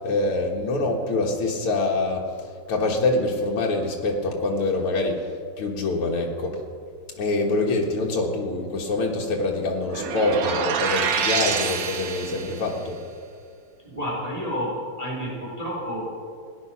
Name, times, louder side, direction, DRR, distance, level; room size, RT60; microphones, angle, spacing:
voice 1, 0.0-2.3 2.7-5.3 5.6-6.6 7.2-13.0, left 2 dB, 90° left, -2 dB, 2.4 m, -25 dB
sound 1, 9.9-12.7, right 6 dB, 85° right, 2.0 m, -26 dB
voice 2, 13.8-16.2, equal, 15° right, -5 dB, 3.6 m, -30 dB
17.5 x 10.5 x 5.8 m, 2.2 s
omnidirectional pair, 2.4 m